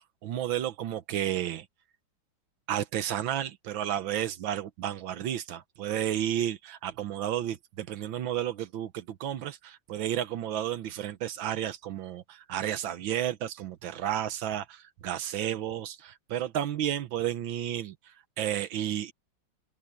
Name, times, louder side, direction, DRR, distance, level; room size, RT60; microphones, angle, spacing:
voice 1, 0.2-1.7 2.7-19.1, right 11 dB, 80° right, 1.7 m, -32 dB
open air
omnidirectional pair, 2.1 m